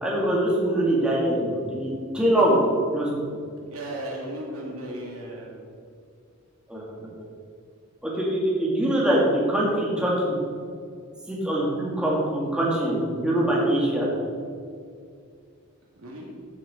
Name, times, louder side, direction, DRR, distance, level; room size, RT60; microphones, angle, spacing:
voice 1, 0.0-2.6 2.9-3.1 6.7-6.8 8.0-10.4 11.3-14.1, right 1 dB, 5° right, -5 dB, 2.4 m, -23 dB
voice 2, 3.7-5.5 16.0-16.3, right 1 dB, 70° right, -3 dB, 2.9 m, -35 dB
15.5 x 7.5 x 4.5 m, 2.3 s
head